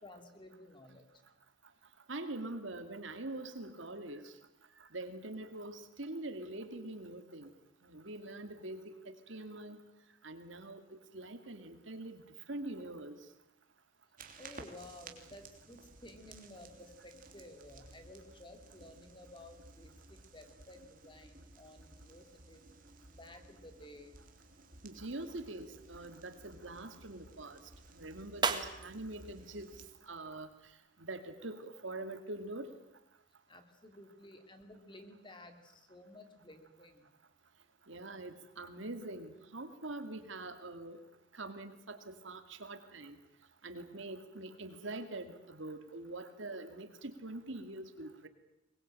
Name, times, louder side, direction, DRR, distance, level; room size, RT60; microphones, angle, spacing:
voice 1, 0.0-1.1 14.4-22.6 23.1-24.1 33.5-37.1, left 1 dB, 25° left, 6 dB, 2.9 m, -54 dB
voice 2, 2.1-4.3 4.8-7.5 7.8-9.8 10.2-12.2 12.5-13.2 24.8-27.6 27.9-29.7 30.0-30.5 31.1-32.7 37.9-41.0 41.3-43.2 43.6-48.3, right 2 dB, 70° right, 8 dB, 2.4 m, -44 dB
sound 1, 14.2-29.9, right 3 dB, 40° right, 3.0 m, -56 dB
sound 2, 28.3-30.7, right 4 dB, 25° right, 1.6 m, -42 dB
23.5 x 21.0 x 9.0 m, 0.87 s
head